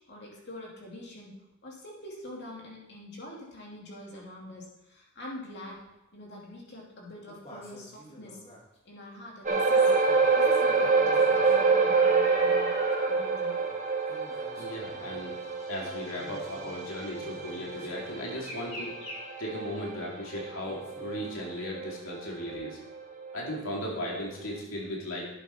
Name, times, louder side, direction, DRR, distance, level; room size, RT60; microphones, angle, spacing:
voice 1, 0.1-1.4 1.6-5.8 6.1-8.4 8.8-9.9 10.3-12.7 13.1-13.6, left 1 dB, 50° left, -3 dB, 2.7 m, -45 dB
sound 1, 5.7-5.8 7.3-8.6 9.8-13.2 13.6-13.7 14.1-15.5 16.1-16.8 17.2-19.2 20.6-21.7 22.5-22.6, equal, 25° left, 2.3 m, -46 dB
sound 2, 9.4-22.1 22.5-22.7 23.2-23.3, right 4 dB, 35° right, 1.4 m, -27 dB
voice 2, 14.6-15.4 15.7-19.0 19.4-22.8 23.3-25.3, equal, 70° left, -2 dB, 2.5 m, -36 dB
11.0 x 8.2 x 4.4 m, 0.91 s
head